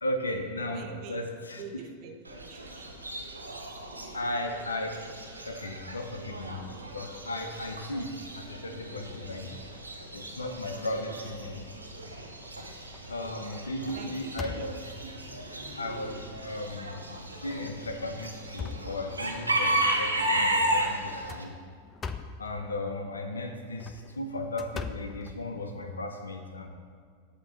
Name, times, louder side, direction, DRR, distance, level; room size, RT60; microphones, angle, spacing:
voice 1, 0.0-1.6 4.1-5.1 5.4-6.6 6.9-9.5 10.1-11.6 13.1-14.8 15.8-17.0 17.4-21.5 22.4-26.7, left 1 dB, 75° left, 5 dB, 0.7 m, -35 dB
voice 2, 0.7-1.3 1.6-3.0 10.8-10.9 13.5-14.7 15.0-15.1 18.4-18.5, right 5 dB, 40° right, 4 dB, 0.6 m, -46 dB
Chicken rooster / Bird, 2.3-21.4, right 1 dB, 80° right, 0.6 m, -34 dB
sound 1, 12.0-12.5 12.9-13.2 13.5-15.1 15.8-15.9 16.4-16.5 17.4-17.6 18.1-19.5 21.0-22.5 23.6-25.9, left 5 dB, 20° left, 0.3 m, -41 dB
8.1 x 3.0 x 5.7 m, 2.1 s
figure-of-eight pair, 90°, 0 cm